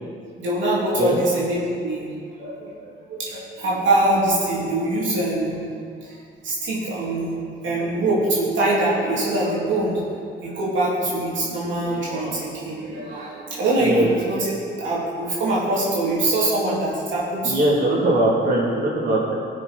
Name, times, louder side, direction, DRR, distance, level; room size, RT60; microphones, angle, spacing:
voice 1, 0.4-2.1 2.4-5.6 6.0-6.1 6.4-7.4 7.6-10.1 10.4-14.5 14.8-17.6, right 2 dB, 70° right, -7 dB, 2.8 m, -23 dB
voice 2, 17.4-19.3, right 1 dB, 50° right, -6 dB, 2.8 m, -20 dB
16.0 x 6.4 x 4.3 m, 2.3 s
cardioid pair, 90°, 20 cm